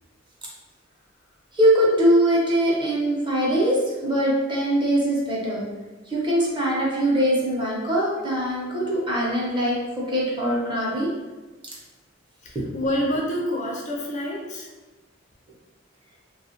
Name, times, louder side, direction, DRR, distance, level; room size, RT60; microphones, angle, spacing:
voice 1, 1.5-5.7 6.1-11.1 12.5-12.6, right 1 dB, 25° right, -5 dB, 0.8 m, -22 dB
voice 2, 12.4-14.7, equal, 40° left, -2 dB, 0.5 m, -27 dB
3.2 x 2.3 x 2.8 m, 1.2 s
head